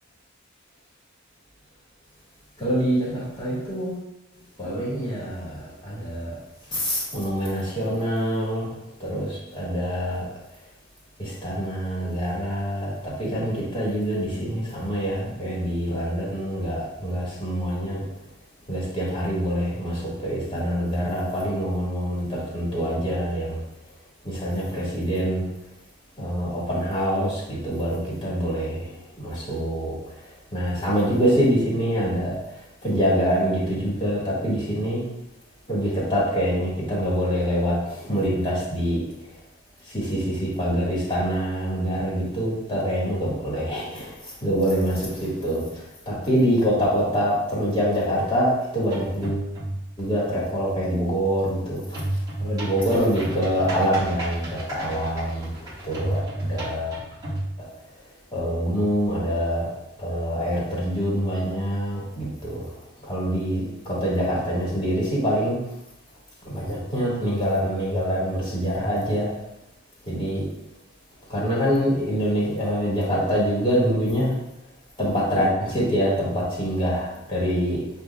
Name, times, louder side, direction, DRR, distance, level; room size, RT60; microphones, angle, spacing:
voice 1, 2.6-4.0 4.6-6.4 6.7-8.7 9.0-10.3 11.2-18.0 18.7-23.6 24.2-25.5 26.2-32.4 32.8-35.1 35.7-39.1 39.9-49.5 50.0-52.0 52.4-57.0 57.6-57.7 58.3-59.7 60.0-62.7 63.0-65.6 66.4-69.4 70.0-70.5 71.3-74.4 75.0-77.8, equal, 25° left, -7 dB, 1.6 m, -25 dB
sound 1, 48.9-50.0 51.9-57.5, right 1 dB, 20° right, 1.6 m, -31 dB
8.0 x 2.7 x 2.3 m, 0.85 s
head